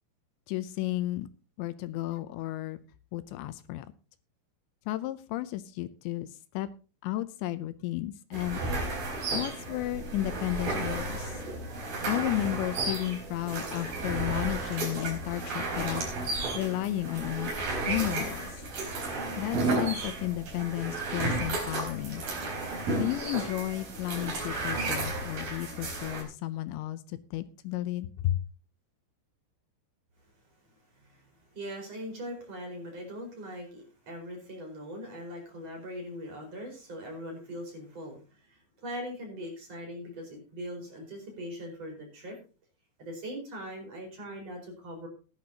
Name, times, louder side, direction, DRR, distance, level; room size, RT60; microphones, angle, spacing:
voice 1, 0.5-1.3 1.6-2.8 3.1-3.9 4.9-6.7 7.0-8.6 9.3-11.4 12.1-16.1 16.5-17.5 17.9-18.6 19.4-22.2 23.0-28.4, left 15 dB, 80° left, 13 dB, 2.9 m, -33 dB
sound 1, 8.3-26.2, right 2 dB, 50° right, 5.7 m, -33 dB
voice 2, 30.9-42.4 43.0-45.1, equal, 35° right, 1 dB, 5.5 m, -41 dB
16.5 x 11.5 x 2.8 m, 0.34 s
omnidirectional pair, 5.4 m